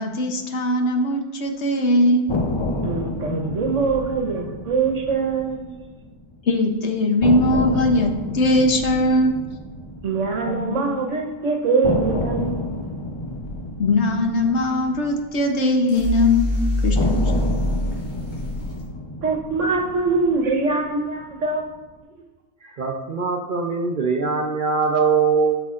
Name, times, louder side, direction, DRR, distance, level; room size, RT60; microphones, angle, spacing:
voice 1, 0.0-2.3 3.3-3.5 6.5-9.3 10.5-10.8 13.8-16.5 16.8-17.1, left 1 dB, 60° left, 3 dB, 1.1 m, -20 dB
sound 1, 2.3-6.4 6.6-6.7 7.2-11.3 11.8-16.2 16.9-21.3, left 2 dB, 35° left, 0.5 m, -30 dB
voice 2, 2.8-5.6 10.0-12.7 19.2-21.6, right 4 dB, 70° right, 2 dB, 1.4 m, -23 dB
sound 2, 15.9-18.8, equal, 75° left, 2.5 m, -24 dB
voice 3, 22.6-25.6, right 5 dB, 50° right, 1 dB, 0.6 m, -22 dB
12.5 x 6.0 x 2.4 m, 1.3 s
omnidirectional pair, 1.3 m